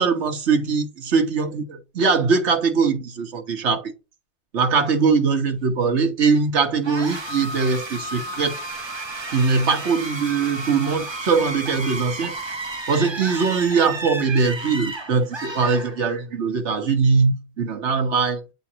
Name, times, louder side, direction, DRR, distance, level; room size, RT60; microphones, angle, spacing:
voice 1, 0.0-3.9 4.5-8.6 9.3-12.3 12.9-18.4, right 5 dB, 75° right, 1.5 m, -21 dB
sound 1, 6.8-16.4, right 2 dB, 25° right, 1.0 m, -32 dB
8.5 x 4.0 x 2.8 m
omnidirectional pair, 1.2 m